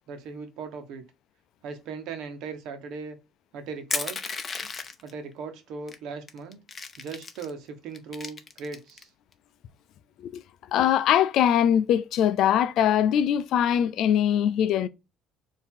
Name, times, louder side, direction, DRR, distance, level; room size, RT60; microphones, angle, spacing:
voice 1, 0.1-1.1 1.6-3.2 3.5-4.2 5.0-6.6 7.0-9.1, right 5 dB, 70° right, 1.1 m, -38 dB
Crushing, 3.9-5.1 5.9-6.0 6.3-7.5 7.9-9.0, left 4 dB, 25° left, 0.6 m, -33 dB
voice 2, 10.7-14.9, left 10 dB, 60° left, 0.5 m, -22 dB
4.5 x 2.8 x 3.7 m
cardioid pair, 140°, 0 cm